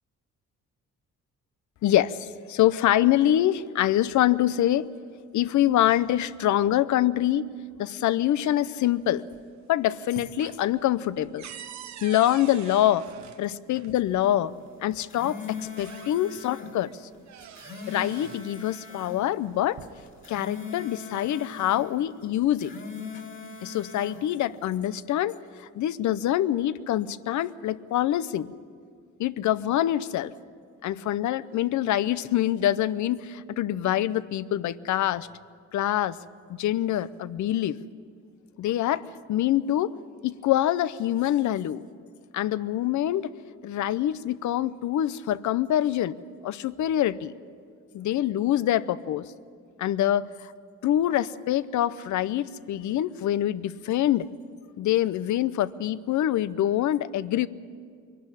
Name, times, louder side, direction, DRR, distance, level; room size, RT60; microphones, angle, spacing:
voice 1, 1.8-4.9 5.3-7.5 7.8-9.2 9.7-11.5 12.0-13.1 13.4-14.5 14.8-16.9 17.9-19.8 20.3-22.7 23.6-28.5 29.2-30.3 30.8-35.3 35.7-36.2 36.5-37.8 38.6-39.0 39.3-39.9 40.2-41.8 42.3-43.3 43.6-46.2 46.4-47.3 47.9-49.3 49.8-50.5 50.8-54.3 54.8-57.5, left 12 dB, 70° left, 17 dB, 0.7 m, -25 dB
sound 1, 9.0-9.6 9.9-14.0 15.0-15.1 15.6-16.5 16.9-18.5 19.4-20.2, right 10 dB, 65° right, 0.8 m, -45 dB
sound 2, 14.9-16.7 17.4-19.2 20.1-21.9 22.5-24.2, left 5 dB, 40° left, 2.6 m, -40 dB
22.5 x 12.0 x 9.9 m, 2.1 s
cardioid pair, 90°, 30 cm